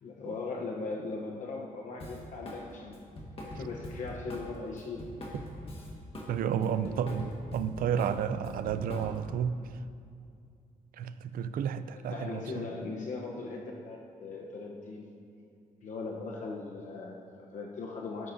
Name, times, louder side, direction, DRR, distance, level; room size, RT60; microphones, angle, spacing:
voice 1, 0.0-3.0 3.4-5.1 6.7-7.3 12.0-15.1 15.8-18.3, left 3 dB, 60° left, -1 dB, 0.9 m, -39 dB
Drum kit, 2.0-2.6 2.9-6.3 6.6-9.4, left 1 dB, 40° left, 1.6 m, -42 dB
voice 2, 6.3-9.6 11.0-12.6, right 8 dB, 85° right, 12 dB, 0.4 m, -31 dB
12.5 x 11.0 x 2.7 m, 2.4 s
wide cardioid pair, 145°, 14 cm